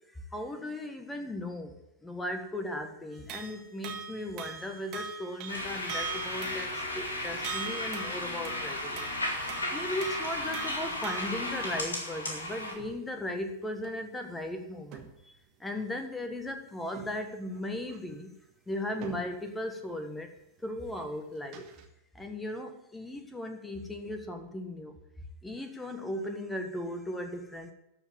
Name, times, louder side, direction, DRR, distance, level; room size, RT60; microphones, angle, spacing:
voice 1, 0.1-1.8 2.0-9.1 9.7-15.3 15.6-18.3 18.7-20.3 20.6-21.7 22.1-25.0 25.4-27.7, left 1 dB, 10° left, 6 dB, 1.6 m, -37 dB
sound 1, 3.1-6.9 7.4-11.9 12.3-12.5 12.8-13.0 13.5-13.9 14.9-15.2 15.7-15.8 16.9-17.2 17.5-18.0 19.0-19.4 20.6-20.8 21.2-21.8, right 7 dB, 40° right, 1.6 m, -43 dB
sound 2, 5.5-12.7, left 1 dB, 70° left, 2.6 m, -34 dB
13.0 x 4.9 x 8.8 m, 0.84 s
figure-of-eight pair, 90°, 0 cm